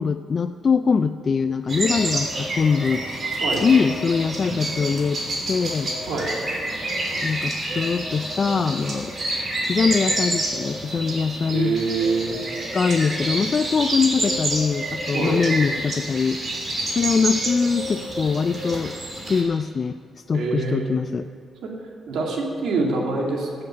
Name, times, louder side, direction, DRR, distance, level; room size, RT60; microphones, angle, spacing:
voice 1, 0.0-3.0 3.6-5.2 5.5-5.9 7.2-9.1 9.6-11.7 12.7-16.4 16.9-21.3, left 5 dB, 45° left, 9 dB, 0.3 m, -23 dB
sound 1, 1.7-19.4, right 1 dB, 50° right, 3.1 m, -28 dB
voice 2, 11.5-12.4 15.1-15.4 20.3-20.9 21.6-21.7 22.1-23.6, right 3 dB, 80° right, 0 dB, 2.2 m, -25 dB
15.0 x 7.9 x 6.3 m, 2.3 s
cardioid pair, 80°, 0 cm